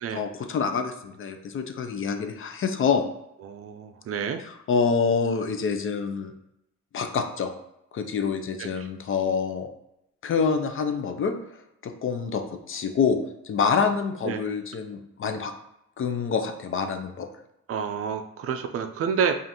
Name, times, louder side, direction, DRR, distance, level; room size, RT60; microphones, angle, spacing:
voice 1, 0.1-3.0 4.5-6.3 6.9-7.5 7.9-9.7 10.2-11.3 11.8-13.2 13.4-15.5 16.0-17.3, left 5 dB, 45° left, 6 dB, 0.5 m, -26 dB
voice 2, 3.4-4.4 8.6-8.9 14.2-14.4 17.7-19.4, right 6 dB, 55° right, 8 dB, 0.4 m, -29 dB
5.1 x 2.5 x 2.9 m, 0.82 s
cardioid pair, 120°, 29 cm